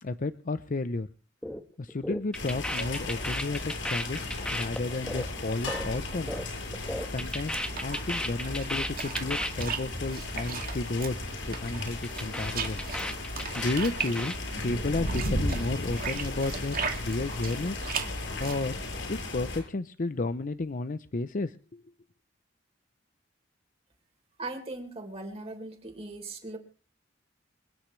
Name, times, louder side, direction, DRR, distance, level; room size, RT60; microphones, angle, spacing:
voice 1, 0.0-1.1 1.8-6.3 7.1-7.5 7.8-11.2 11.5-12.8 13.6-14.3 14.6-17.8 18.4-18.8 19.1-21.8, left 2 dB, 45° left, 12 dB, 0.6 m, -32 dB
sound 1, 1.4-1.6 1.9-6.5 6.7-9.7 9.9-10.1 10.4-10.7 11.0-11.3 11.6-14.4, left 1 dB, 5° left, 1.3 m, -35 dB
sound 2, 2.3-19.6, left 2 dB, 75° left, 6.8 m, -35 dB
sound 3, 6.8-18.7, right 6 dB, 50° right, 2.3 m, -39 dB
voice 2, 24.4-26.6, right 2 dB, 35° right, 2 dB, 3.7 m, -39 dB
27.5 x 10.0 x 3.2 m, 0.37 s
head